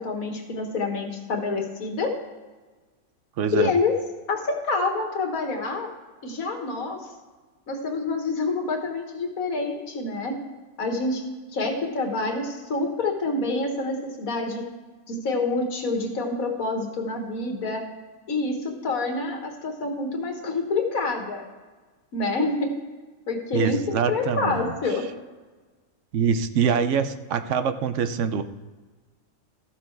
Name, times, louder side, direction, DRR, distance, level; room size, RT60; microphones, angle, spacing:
voice 1, 0.0-2.1 3.5-3.9 4.3-5.9 6.2-7.0 7.7-10.4 10.8-11.2 11.5-14.6 15.1-17.8 18.3-21.4 22.1-22.8 23.3-25.1, left 3 dB, 85° left, 3 dB, 1.9 m, -27 dB
voice 2, 3.4-3.7 23.5-24.7 26.1-28.4, right 7 dB, 65° right, 10 dB, 0.9 m, -24 dB
14.0 x 6.8 x 4.6 m, 1.3 s
omnidirectional pair, 1.4 m